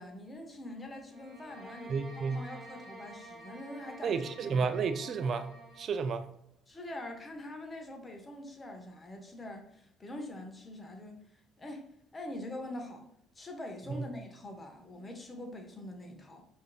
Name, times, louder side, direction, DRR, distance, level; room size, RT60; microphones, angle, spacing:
voice 1, 0.0-4.2 4.5-4.7 6.7-11.2 11.6-13.1 13.4-16.5, left 1 dB, 25° left, 0.7 m, -44 dB
sound 1, 1.1-6.0, right 1 dB, 35° right, 1.4 m, -50 dB
voice 2, 1.9-2.4 4.0-5.5 5.8-6.3 13.9-14.1, right 5 dB, 50° right, 0.4 m, -31 dB
5.0 x 2.6 x 2.3 m
supercardioid pair, 90°, 0 cm